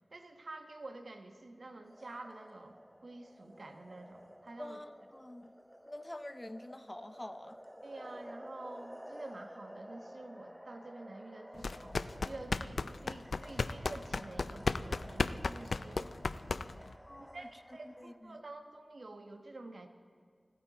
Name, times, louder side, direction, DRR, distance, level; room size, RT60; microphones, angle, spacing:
voice 1, 0.1-4.8 7.8-16.1 17.2-19.9, right 2 dB, 70° right, 6 dB, 1.1 m, -49 dB
sound 1, 1.8-18.2, equal, 5° right, 0.9 m, -53 dB
voice 2, 4.6-5.5 5.9-7.6 17.0-18.4, left 1 dB, 25° left, 11 dB, 0.8 m, -47 dB
sound 2, 11.6-16.9, left 3 dB, 85° left, 0.3 m, -35 dB
25.0 x 9.0 x 4.0 m, 2.1 s
cardioid pair, 40°, 0 cm